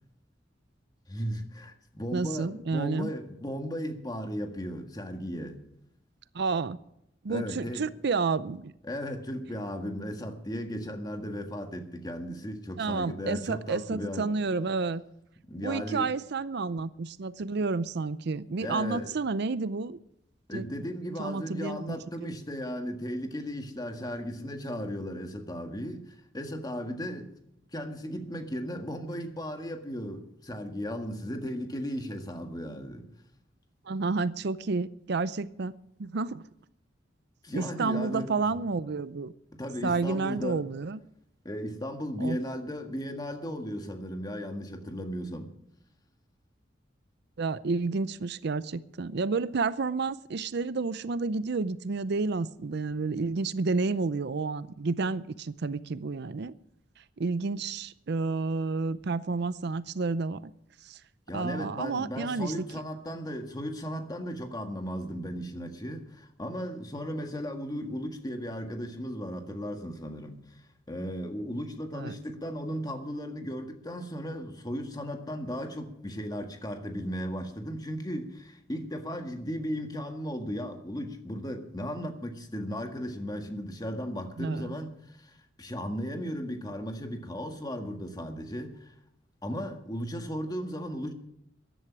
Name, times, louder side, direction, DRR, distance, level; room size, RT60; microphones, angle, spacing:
voice 1, 1.1-5.6 7.3-7.9 8.8-14.3 15.5-16.1 18.6-19.1 20.5-27.3 27.7-33.1 37.4-38.3 39.5-40.6 41.4-45.5 61.3-70.4 70.9-88.9 89.4-91.1, equal, 20° left, 1.7 m, -36 dB
voice 2, 2.1-3.1 6.3-6.8 7.2-8.7 12.8-15.0 15.6-20.0 20.5-20.6 21.2-22.3 33.8-36.5 37.5-39.3 39.8-41.0 42.2-42.4 47.4-56.5 57.0-60.5 60.8-61.0 61.3-62.8 71.9-72.2 84.4-84.7, right 4 dB, 60° right, 0.5 m, -30 dB
14.5 x 11.0 x 6.1 m
head